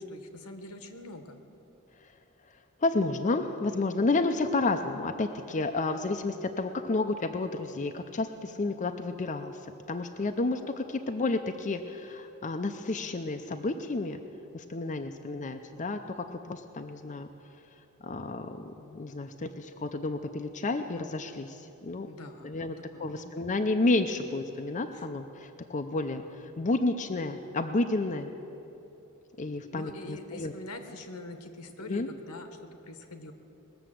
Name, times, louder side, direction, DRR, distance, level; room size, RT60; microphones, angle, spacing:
voice 1, 0.1-1.4 22.1-22.6 22.9-23.4 24.9-25.1 29.7-33.3, left 1 dB, 85° left, 7 dB, 1.2 m, -44 dB
voice 2, 2.8-14.2 14.5-17.3 18.0-22.1 22.4-28.3 29.4-30.5 31.8-32.1, left 2 dB, 35° left, 6 dB, 0.5 m, -31 dB
20.0 x 6.9 x 7.7 m, 3.0 s
head